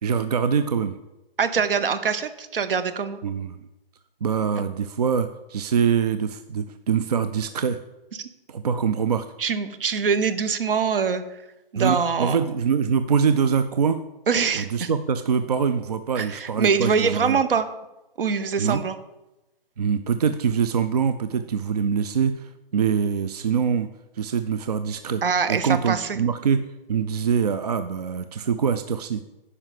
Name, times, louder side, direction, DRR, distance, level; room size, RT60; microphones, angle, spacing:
voice 1, 0.0-1.0 3.2-3.6 4.2-7.8 8.5-9.3 11.8-14.0 14.5-17.4 18.6-18.8 19.8-23.9 24.1-25.2 25.5-29.2, right 6 dB, 45° right, 11 dB, 0.4 m, -24 dB
voice 2, 1.4-3.2 8.2-8.3 9.4-11.2 11.7-12.4 14.3-14.9 16.2-17.7 18.2-19.0 25.2-26.2, right 6 dB, 65° right, 12 dB, 1.1 m, -24 dB
9.7 x 5.6 x 7.6 m, 0.98 s
hypercardioid pair, 165°, 30 cm